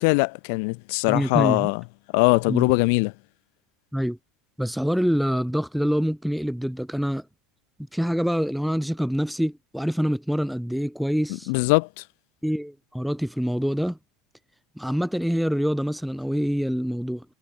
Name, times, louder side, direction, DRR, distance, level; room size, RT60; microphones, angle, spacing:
voice 1, 0.0-1.8 2.1-3.1 11.5-12.0, left 33 dB, 60° left, 5.1 m, -21 dB
voice 2, 1.1-1.7 2.5-2.7 3.9-4.2 4.6-7.2 7.9-11.5 12.4-14.0 14.8-17.3, equal, ahead, 7.5 m, -25 dB
figure-of-eight pair, 75°, 0 cm